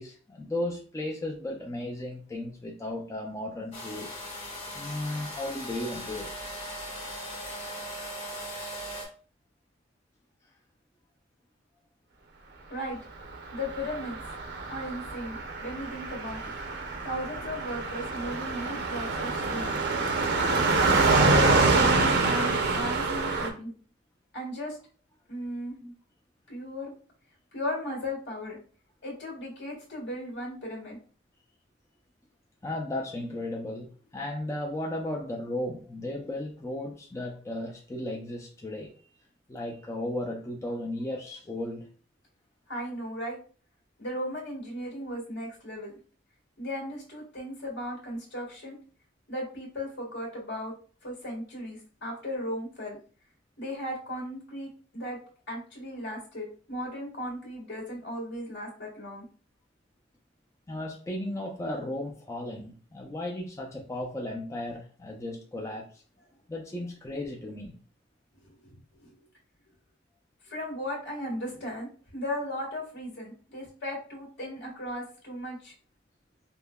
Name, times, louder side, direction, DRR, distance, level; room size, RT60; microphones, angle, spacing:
voice 1, 0.0-4.1 4.7-6.3 25.8-25.9 32.6-33.9 34.1-38.9 39.5-41.9 60.7-65.9 66.5-67.8, left 1 dB, 15° left, 0.4 m, -35 dB
sound 1, 3.7-9.1, equal, 35° left, 1.5 m, -39 dB
voice 2, 13.5-14.2 14.7-16.5 17.0-19.7 20.8-23.7 24.3-24.8 25.3-25.7 26.5-26.9 27.5-28.6 29.0-31.0 42.7-43.4 44.0-45.9 46.6-48.8 49.3-50.7 51.0-53.0 53.6-55.2 55.5-59.2 68.4-69.1 70.5-75.7, equal, 65° left, 1.6 m, -36 dB
Car passing by, 13.6-23.5, right 3 dB, 60° right, 0.6 m, -26 dB
5.2 x 2.1 x 2.2 m
head